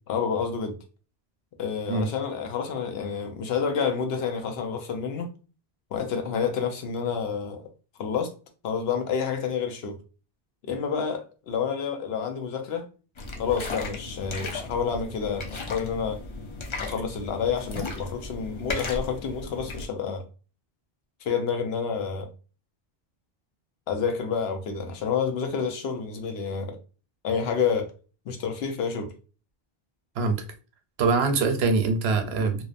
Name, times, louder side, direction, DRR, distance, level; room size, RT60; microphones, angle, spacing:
voice 1, 0.1-0.8 1.6-5.3 5.9-7.6 8.0-8.3 8.6-10.0 10.6-12.9 13.4-16.2 16.8-20.2 21.2-22.3 23.9-26.8 27.2-27.9 28.3-29.1, left 6 dB, 80° left, 0.8 m, -29 dB
sound 1, 13.2-19.9, left 3 dB, 45° left, 0.4 m, -36 dB
voice 2, 31.0-32.7, right 4 dB, 85° right, 0.8 m, -23 dB
2.7 x 2.1 x 2.4 m
omnidirectional pair, 1.0 m